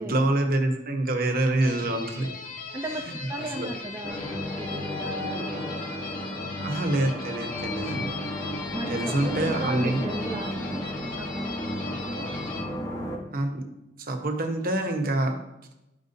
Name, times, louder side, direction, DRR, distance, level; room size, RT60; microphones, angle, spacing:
voice 1, 0.0-2.3 3.6-3.7 6.6-8.1 8.9-10.0 13.3-13.6 14.0-15.4, right 2 dB, 55° right, 4 dB, 1.1 m, -26 dB
sound 1, 1.6-12.6, left 4 dB, 55° left, 1.4 m, -39 dB
voice 2, 2.7-5.8 8.7-10.9 11.2-11.6, right 1 dB, 15° right, 0 dB, 0.6 m, -35 dB
sound 2, 4.0-13.2, left 1 dB, 20° left, 1.2 m, -33 dB
12.5 x 5.3 x 2.7 m, 0.92 s
head